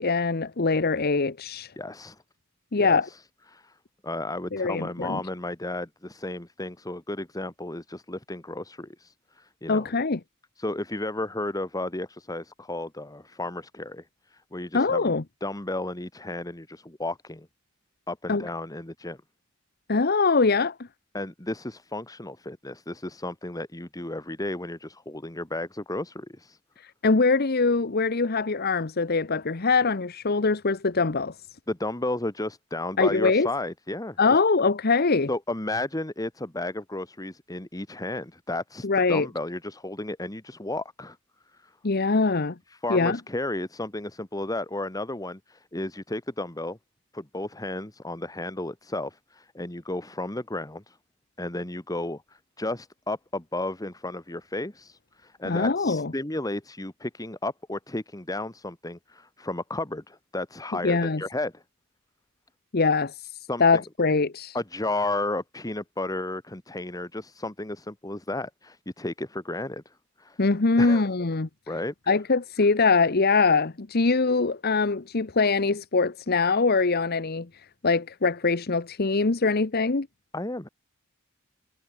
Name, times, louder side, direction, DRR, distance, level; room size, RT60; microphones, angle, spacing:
voice 1, 0.0-1.7 2.7-3.1 4.5-5.2 9.7-10.2 14.7-15.2 18.3-18.5 19.9-20.7 26.8-31.3 33.0-33.5 34.2-35.3 38.8-39.3 41.8-42.6 42.9-43.2 55.4-56.1 60.8-61.2 62.7-64.6 70.4-71.5 72.1-80.1, left 4 dB, 50° left, 0.9 m, -23 dB
voice 2, 1.8-2.2 2.7-3.2 3.5-3.7 4.0-9.9 10.6-15.1 15.4-17.5 18.1-19.2 21.1-26.6 31.7-34.4 35.3-41.2 41.6-41.7 42.7-46.8 47.1-51.0 51.4-61.6 63.5-63.8 64.5-69.9 70.2-70.4 70.8-71.0 71.7-71.9 80.3-80.7, left 2 dB, 20° left, 1.7 m, -33 dB
head